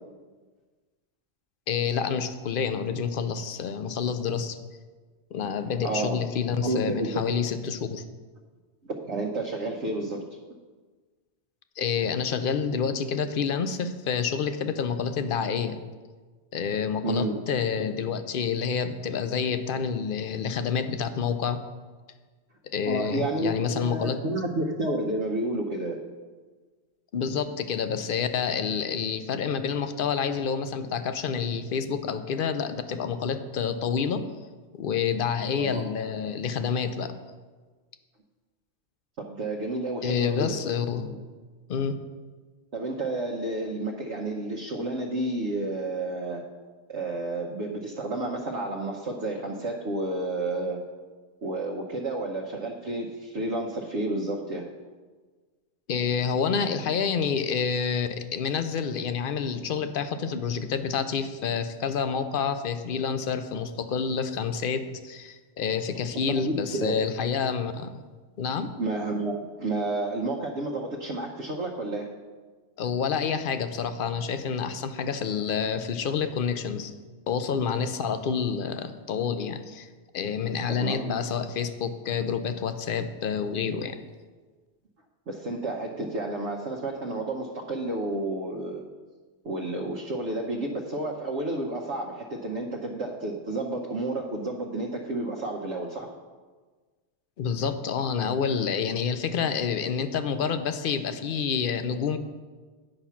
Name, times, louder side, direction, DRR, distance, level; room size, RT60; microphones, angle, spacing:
voice 1, 1.7-4.6 5.3-8.0 11.8-15.8 16.5-21.6 22.6-24.2 27.1-34.3 34.7-37.1 40.0-41.1 41.7-42.0 55.9-68.0 68.4-68.7 72.8-76.9 77.3-79.9 80.1-84.0 97.4-102.2, left 6 dB, 60° left, 10 dB, 0.7 m, -28 dB
voice 2, 5.8-6.2 6.6-7.2 8.8-10.2 17.0-17.3 22.9-26.0 35.6-35.9 39.2-40.6 40.9-41.2 42.7-46.4 46.9-50.8 51.4-54.7 66.3-67.0 68.8-72.2 80.7-81.1 85.3-88.8 89.4-96.1, right 2 dB, 90° right, -1 dB, 1.2 m, -31 dB
9.0 x 6.0 x 5.7 m, 1.4 s
omnidirectional pair, 1.1 m